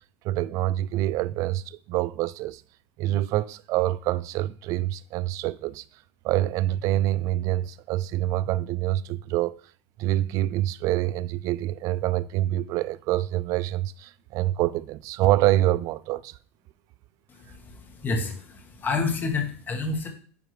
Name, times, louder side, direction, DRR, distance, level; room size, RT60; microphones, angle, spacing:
voice 1, 0.2-2.6 3.0-5.8 6.2-9.6 10.0-16.4, right 15 dB, 50° right, 0.3 m, -26 dB
voice 2, 17.3-20.1, left 3 dB, 25° left, 1.3 m, -29 dB
9.2 x 4.5 x 3.2 m
supercardioid pair, 110°, 7 cm